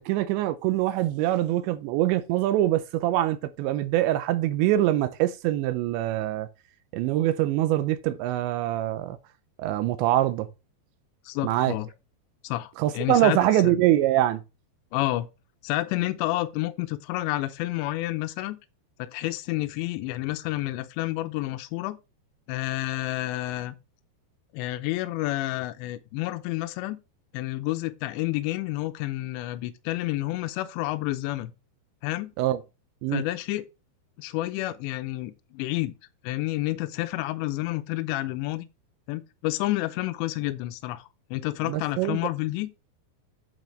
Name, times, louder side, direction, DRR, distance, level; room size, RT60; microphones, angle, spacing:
voice 1, 0.0-6.5 6.9-9.2 9.6-10.5 11.4-11.7 12.8-14.4 32.4-32.6 33.0-33.2 41.6-42.2, right 13 dB, 85° right, 3.0 m, -24 dB
voice 2, 11.3-11.9 12.4-13.4 13.6-13.8 14.9-15.3 15.6-18.6 19.0-22.0 22.5-23.8 24.5-27.0 27.3-31.5 32.0-32.3 33.1-33.7 34.2-35.9 36.2-38.6 39.1-42.7, left 17 dB, 85° left, 2.9 m, -29 dB
9.1 x 8.1 x 3.3 m
omnidirectional pair, 5.2 m